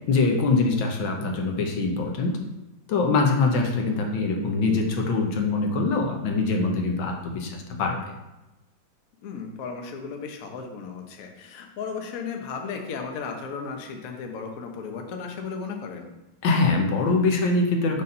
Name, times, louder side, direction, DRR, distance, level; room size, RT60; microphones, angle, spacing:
voice 1, 0.1-2.4 2.9-8.1 16.4-18.0, left 3 dB, 80° left, 2 dB, 1.6 m, -23 dB
voice 2, 9.2-16.1, left 5 dB, 60° left, 3 dB, 1.0 m, -35 dB
5.6 x 4.0 x 5.3 m, 0.98 s
omnidirectional pair, 2.2 m